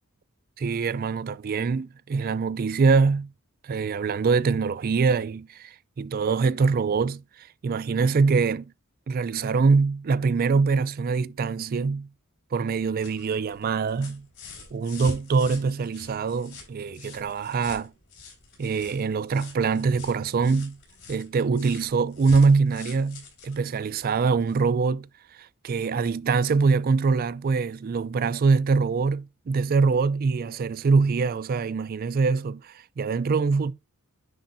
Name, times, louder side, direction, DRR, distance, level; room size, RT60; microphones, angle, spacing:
voice 1, 0.6-3.3 3.6-8.7 9.1-12.1 12.5-14.3 14.7-17.9 18.6-20.8 21.1-33.7, right 4 dB, 40° right, 0.3 m, -24 dB
sound 1, 12.6-24.7 26.0-26.1, left 3 dB, 55° left, 4.1 m, -46 dB
10.0 x 4.4 x 2.6 m
head